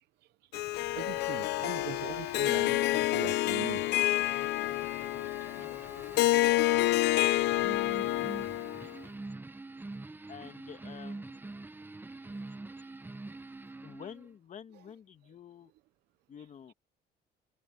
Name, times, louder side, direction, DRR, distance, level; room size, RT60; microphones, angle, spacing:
Harp, 0.5-9.0, left 17 dB, 90° left, 0.9 m, -28 dB
voice 1, 0.9-3.8 4.9-5.7 6.1-6.4 6.9-7.2 8.8-8.9 12.7-12.9 14.7-14.8, right 17 dB, 80° right, 0.7 m, -44 dB
sound 1, 1.2-14.3, right 2 dB, 10° right, 0.8 m, -46 dB
voice 2, 10.3-11.4 13.8-15.7 16.3-16.7, left 8 dB, 45° left, 2.0 m, -48 dB
cardioid pair, 110°, 17 cm